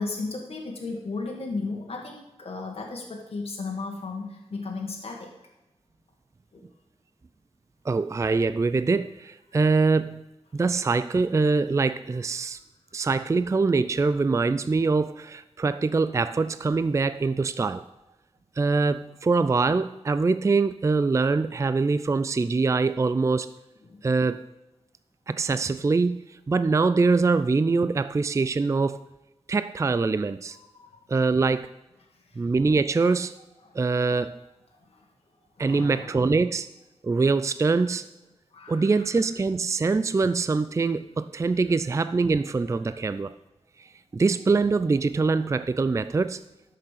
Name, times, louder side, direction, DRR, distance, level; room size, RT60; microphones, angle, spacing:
voice 1, 0.0-5.3 6.5-6.7 23.8-24.0 30.5-31.0 33.6-33.8 34.9-35.0 35.6-36.2 38.5-39.1 42.8-43.0, left 3 dB, 60° left, -1 dB, 1.8 m, -35 dB
voice 2, 7.9-10.2 10.5-12.6 12.9-17.9 18.6-23.6 24.0-24.5 25.3-29.0 29.5-30.6 31.1-31.7 32.4-33.4 33.7-34.4 35.6-36.7 37.0-38.1 38.7-43.3 43.8-43.9 44.1-46.4, right 4 dB, 25° right, 13 dB, 0.3 m, -24 dB
11.5 x 6.7 x 5.7 m, 0.97 s
wide cardioid pair, 95°, 11 cm